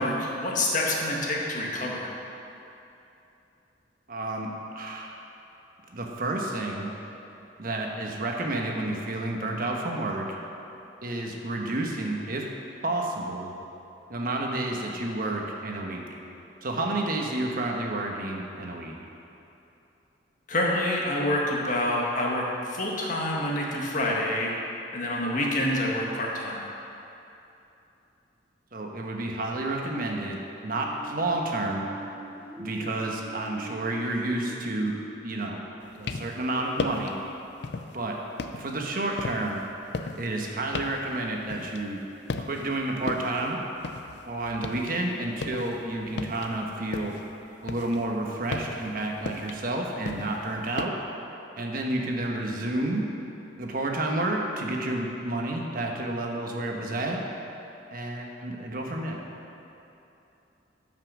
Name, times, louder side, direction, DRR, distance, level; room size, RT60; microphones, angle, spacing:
voice 1, 0.0-2.0 20.5-24.5 24.9-26.7, left 1 dB, 45° left, -2 dB, 1.6 m, -27 dB
voice 2, 4.1-4.5 4.7-5.1 5.9-6.9 7.6-10.3 11.0-12.5 12.8-13.5 14.1-16.0 16.6-19.0 28.7-31.9 32.6-34.9 35.2-35.6 35.9-37.2 37.9-38.2 38.5-39.6 40.2-42.0 42.4-43.6 44.3-47.1 47.6-51.0 51.6-53.1 53.6-57.2 57.9-59.2, right 2 dB, 50° right, 1 dB, 1.1 m, -30 dB
sound 1, 30.6-36.3, right 3 dB, 10° right, 1.1 m, -44 dB
sound 2, 35.8-36.4 36.8-37.2 37.6-38.0 38.4-42.0 42.3-42.8 43.1-45.0 45.2-47.3 47.6-50.9, left 3 dB, 65° left, 0.5 m, -35 dB
12.5 x 5.8 x 6.2 m, 2.9 s
head